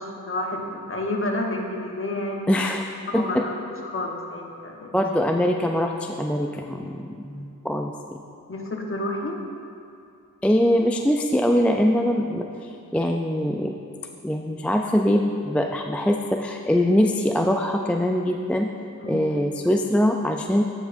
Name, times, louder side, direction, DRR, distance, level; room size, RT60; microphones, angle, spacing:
voice 1, 0.0-2.7 3.1-3.6 3.8-4.9 7.3-7.4 8.5-9.4 19.0-19.2, left 1 dB, 35° left, 0 dB, 1.1 m, -30 dB
voice 2, 2.5-2.8 3.1-3.4 4.9-8.2 10.4-13.7 14.2-18.7 19.1-20.6, equal, 5° left, 3 dB, 0.3 m, -23 dB
9.5 x 7.7 x 2.6 m, 2.4 s
cardioid pair, 50°, 36 cm